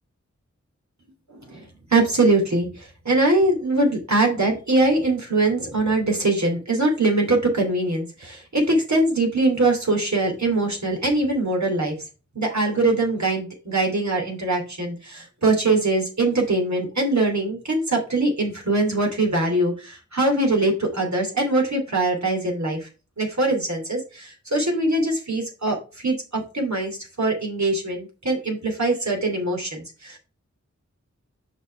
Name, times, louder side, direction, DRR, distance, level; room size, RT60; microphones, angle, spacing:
voice 1, 1.3-11.9 12.3-22.9 23.2-30.2, right 2 dB, 70° right, 0 dB, 2.9 m, -22 dB
6.1 x 5.5 x 4.6 m, 0.32 s
wide cardioid pair, 60°, 29 cm